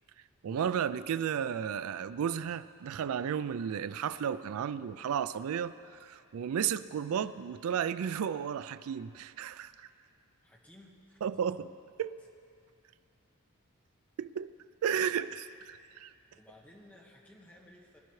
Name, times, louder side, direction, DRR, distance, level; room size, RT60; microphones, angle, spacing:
voice 1, 0.4-9.9 11.2-11.7 12.0-12.2 14.2-14.5 14.8-16.1, right 8 dB, 70° right, 0.3 m, -33 dB
voice 2, 10.4-11.2 16.3-18.0, left 1 dB, 10° left, 1.4 m, -56 dB
21.0 x 11.5 x 3.2 m
head